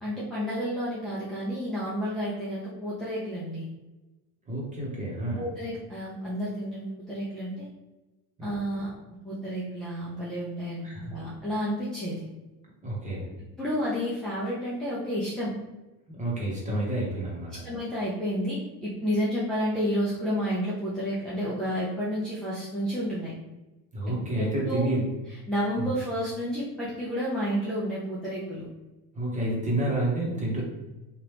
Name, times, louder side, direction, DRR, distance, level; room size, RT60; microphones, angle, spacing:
voice 1, 0.0-3.7 5.4-7.7 8.4-8.9 9.2-10.8 11.1-12.2 13.6-15.5 17.5-23.3 24.1-24.9 25.5-28.7, equal, ahead, -8 dB, 0.5 m, -30 dB
voice 2, 4.5-5.5 8.4-8.5 10.8-11.1 12.8-13.3 16.1-17.5 23.9-25.0 25.8-25.9 29.1-30.6, right 1 dB, 15° right, -4 dB, 1.0 m, -29 dB
3.0 x 2.5 x 3.4 m, 1.1 s
supercardioid pair, 125°, 45 cm